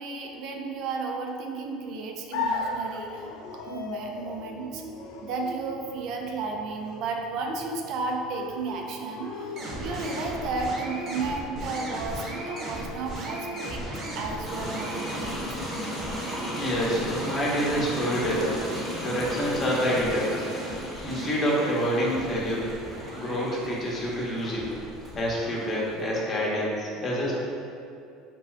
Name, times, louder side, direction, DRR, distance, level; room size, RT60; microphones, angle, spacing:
voice 1, 0.0-3.3 3.5-4.8 5.2-13.9 14.1-15.6, right 4 dB, 60° right, 2 dB, 0.3 m, -33 dB
sound 1, 2.3-10.3, left 3 dB, 75° left, 0.4 m, -37 dB
sound 2, 9.6-26.5, right 1 dB, 40° right, 0.7 m, -38 dB
sound 3, 14.4-26.2, equal, 5° right, 0.8 m, -36 dB
voice 2, 16.5-18.6 19.0-20.5 21.0-22.7 23.2-24.7 25.1-27.3, equal, 35° left, -4 dB, 0.7 m, -27 dB
2.7 x 2.2 x 3.2 m, 2.5 s
supercardioid pair, 100°, 0 cm